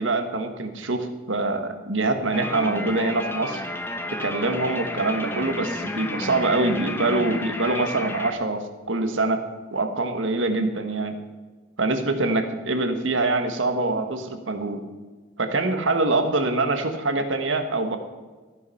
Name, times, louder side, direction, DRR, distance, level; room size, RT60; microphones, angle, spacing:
voice 1, 0.0-3.6 4.2-9.4 9.7-11.1 11.8-14.8 15.4-18.0, right 2 dB, 75° right, 7 dB, 1.6 m, -24 dB
sound 1, 2.3-8.3, left 1 dB, 10° left, 0.9 m, -31 dB
15.0 x 9.7 x 5.8 m, 1.3 s
head